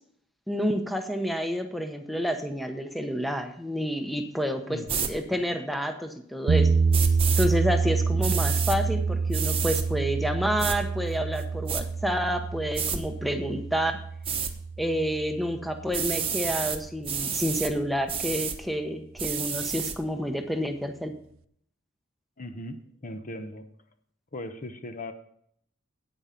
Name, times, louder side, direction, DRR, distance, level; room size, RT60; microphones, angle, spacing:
voice 1, 0.5-6.7 7.4-14.0 14.8-21.1, equal, ahead, 6 dB, 0.9 m, -29 dB
voice 2, 4.7-5.1 22.4-23.7 24.3-25.1, left 1 dB, 40° left, 8 dB, 0.9 m, -38 dB
sound 1, 4.9-5.1 6.9-7.5 8.2-8.8 9.3-9.8 10.6-10.8 11.4-11.8 12.7-13.0 14.2-14.5 15.9-16.8 17.0-17.7 18.1-18.6 19.2-19.9, right 7 dB, 25° right, 1.1 m, -30 dB
sound 2, 6.5-16.5, right 5 dB, 70° right, 0.5 m, -27 dB
8.9 x 8.7 x 5.7 m, 0.67 s
head